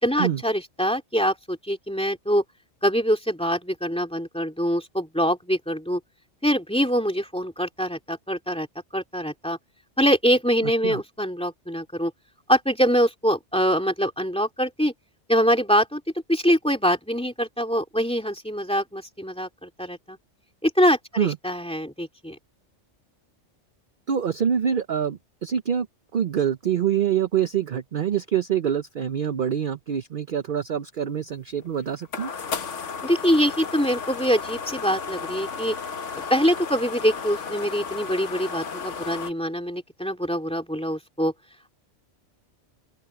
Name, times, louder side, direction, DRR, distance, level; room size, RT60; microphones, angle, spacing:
voice 1, 0.0-2.4 2.8-6.0 6.4-8.7 8.9-9.6 10.0-12.1 12.5-14.9 15.3-16.0 16.3-20.2 20.6-22.4 33.0-35.8 36.1-41.3, equal, 5° left, 2.4 m, -24 dB
voice 2, 10.6-11.0 21.2-21.4 24.1-25.9 26.1-32.3, right 8 dB, 50° right, 0.8 m, -25 dB
sound 1, 31.3-39.3, left 5 dB, 85° left, 1.6 m, -34 dB
open air
omnidirectional pair, 1.2 m